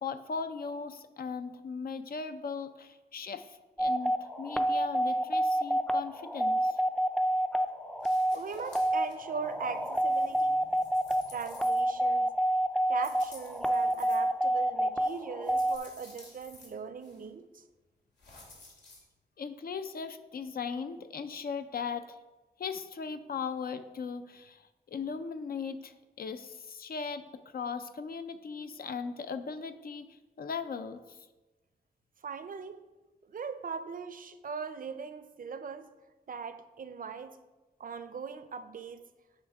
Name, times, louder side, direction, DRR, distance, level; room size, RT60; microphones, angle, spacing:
voice 1, 0.0-6.8 19.4-22.2 22.6-27.2 27.5-31.2, left 5 dB, 60° left, 10 dB, 0.5 m, -38 dB
sound 1, 3.8-15.8, right 1 dB, 5° left, 0.4 m, -28 dB
sound 2, 8.0-9.1 9.5-12.1 12.9-14.2 15.0-16.7 17.0-17.2 18.2-19.0, left 2 dB, 85° left, 2.3 m, -55 dB
voice 2, 8.3-10.7 11.1-12.3 12.9-17.6 32.2-32.8 33.2-35.9 36.3-37.4 37.8-39.0, right 5 dB, 55° right, 11 dB, 0.5 m, -40 dB
9.7 x 5.5 x 3.5 m, 1.2 s
wide cardioid pair, 125°, 18 cm